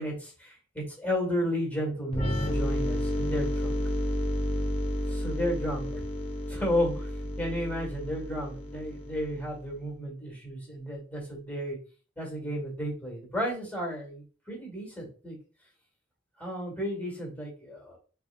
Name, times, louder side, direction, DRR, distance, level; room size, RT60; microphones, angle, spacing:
voice 1, 0.0-3.8 5.1-6.0 6.5-7.1 7.4-11.8 12.2-15.4 16.4-18.0, equal, 10° left, -2 dB, 1.7 m, -33 dB
sound 1, 2.1-9.7, left 1 dB, 30° left, 0.7 m, -31 dB
4.4 x 3.4 x 2.5 m, 0.37 s
head